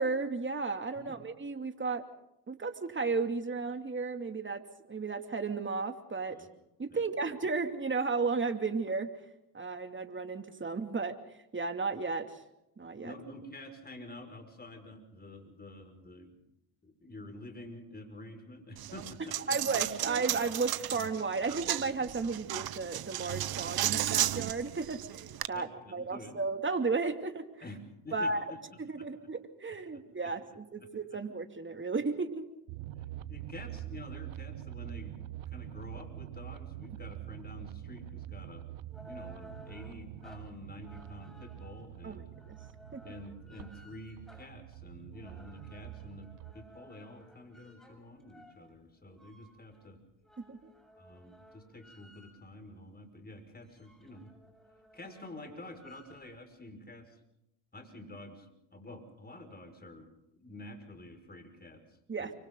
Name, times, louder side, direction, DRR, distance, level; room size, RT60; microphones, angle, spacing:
voice 1, 0.0-2.0 2.5-4.6 4.9-6.4 6.8-9.1 9.5-11.2 11.5-12.4 12.8-13.1 19.5-27.5 28.1-28.4 28.8-32.5 42.0-42.2 42.5-42.6 42.9-43.0 50.4-50.7 62.1-62.3, right 4 dB, 25° right, 6 dB, 2.7 m, -34 dB
voice 2, 13.0-16.4 16.8-19.8 25.5-26.4 27.6-28.6 29.0-29.1 29.9-30.0 30.8-30.9 33.3-38.7 39.0-42.3 43.0-46.3 46.5-50.0 51.0-54.3 54.9-57.2 57.7-62.3, left 1 dB, 20° left, 6 dB, 5.8 m, -49 dB
Coin (dropping), 18.8-25.5, right 13 dB, 50° right, 1.1 m, -34 dB
sound 1, 32.7-46.5, right 13 dB, 75° right, 1.2 m, -45 dB
sound 2, 38.8-52.7 53.1-53.2 53.5-56.4, equal, ahead, 7.8 m, -57 dB
29.5 x 25.0 x 3.9 m, 0.83 s
supercardioid pair, 70°, 46 cm